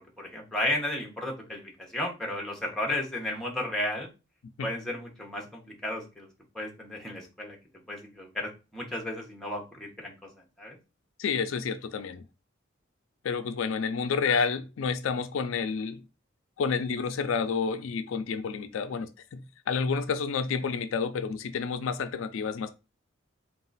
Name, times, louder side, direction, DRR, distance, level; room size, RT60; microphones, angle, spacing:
voice 1, 0.2-4.1 4.6-6.3 6.5-7.6 7.9-10.3 10.6-10.8, left 1 dB, 5° left, 1.0 m, -33 dB
voice 2, 11.2-12.2 13.2-16.0 16.6-22.7, left 5 dB, 75° left, 0.4 m, -30 dB
3.8 x 2.4 x 3.9 m
head